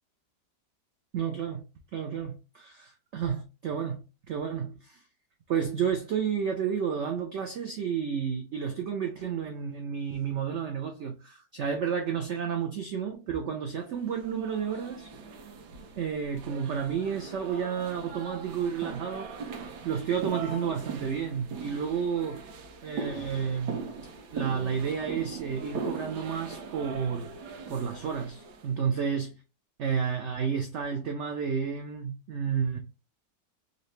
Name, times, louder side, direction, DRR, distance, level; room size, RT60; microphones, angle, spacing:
voice 1, 1.1-1.6 1.9-5.0 5.5-15.1 16.0-22.4 22.8-23.8 24.3-27.3 27.7-29.3 29.8-32.8, right 7 dB, 90° right, 0.6 m, -31 dB
sound 1, 14.0-28.7, right 4 dB, 70° right, 1.3 m, -40 dB
3.9 x 2.7 x 3.2 m
omnidirectional pair, 1.9 m